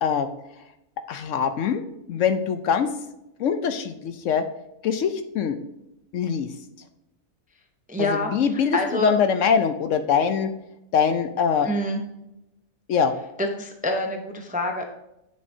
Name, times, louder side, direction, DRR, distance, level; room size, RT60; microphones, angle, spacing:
voice 1, 1.1-1.8 2.1-2.9 3.4-4.4 4.8-5.6 6.1-6.5 8.0-10.5 10.9-11.7 12.9-13.1, left 7 dB, 70° left, 9 dB, 0.9 m, -23 dB
voice 2, 7.9-8.3 8.7-9.1 11.6-12.0 13.4-14.8, left 1 dB, 10° right, 3 dB, 0.5 m, -26 dB
8.7 x 6.5 x 2.7 m, 0.87 s
omnidirectional pair, 1.5 m